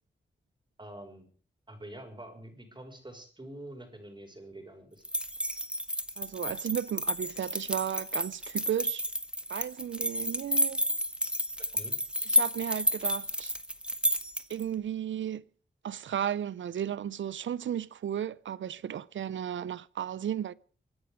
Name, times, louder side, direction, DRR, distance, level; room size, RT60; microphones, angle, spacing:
voice 1, 0.8-1.3 1.7-5.0 11.7-11.9, right 1 dB, 25° right, 5.9 m, -46 dB
sound 1, 5.0-14.6, equal, 5° right, 1.7 m, -31 dB
voice 2, 6.2-9.0 9.5-10.8 12.3-13.5 14.5-15.4 15.8-20.5, right 9 dB, 85° right, 0.6 m, -34 dB
25.0 x 9.6 x 5.1 m
cardioid pair, 65°, 19 cm